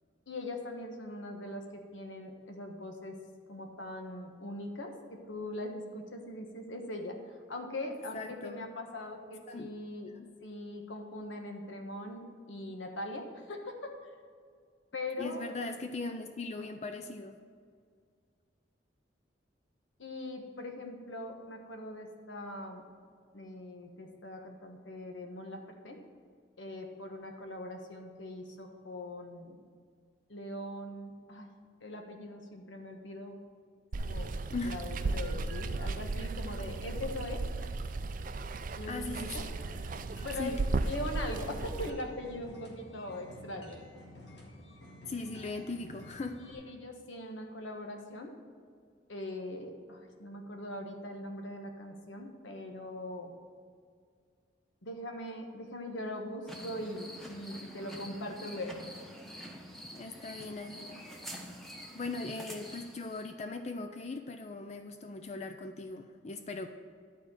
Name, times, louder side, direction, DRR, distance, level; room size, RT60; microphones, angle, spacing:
voice 1, 0.3-3.2 3.5-7.2 7.5-10.1 10.4-13.9 14.9-15.6 20.0-22.8 23.3-26.0 26.6-29.6 30.3-31.5 31.8-33.4 34.0-34.3 34.6-37.4 38.7-39.4 40.2-40.6 40.8-43.8 46.4-48.3 49.1-53.3 54.8-58.8, left 1 dB, 90° left, 3 dB, 1.3 m, -41 dB
voice 2, 8.1-8.7 9.5-9.7 10.1-10.3 15.2-17.4 34.5-34.8 38.9-39.5 40.4-40.6 45.1-46.5 59.9-61.0 61.9-66.7, left 3 dB, 35° left, 6 dB, 0.4 m, -39 dB
Water, 33.9-41.9, right 3 dB, 45° right, 0.4 m, -35 dB
sound 1, 39.6-46.5, left 1 dB, 70° left, 2.0 m, -51 dB
sound 2, 56.5-63.3, equal, ahead, 0.9 m, -47 dB
11.5 x 4.4 x 7.3 m, 2.1 s
head